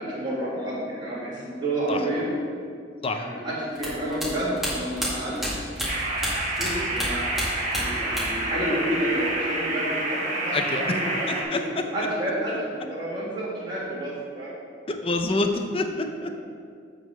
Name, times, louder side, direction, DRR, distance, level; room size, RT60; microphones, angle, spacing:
voice 1, 0.0-2.3 3.1-5.4 6.3-7.3 7.6-14.5, right 1 dB, 25° right, -9 dB, 1.8 m, -30 dB
sound 1, 3.8-6.7 7.0-8.5 8.7-9.5, equal, ahead, 2.0 m, -30 dB
sound 2, 5.9-11.4, right 2 dB, 45° right, 1.4 m, -28 dB
voice 2, 10.5-11.0 11.3-11.9 14.9-16.3, left 2 dB, 30° left, 5 dB, 0.5 m, -27 dB
8.0 x 3.9 x 6.3 m, 2.2 s
head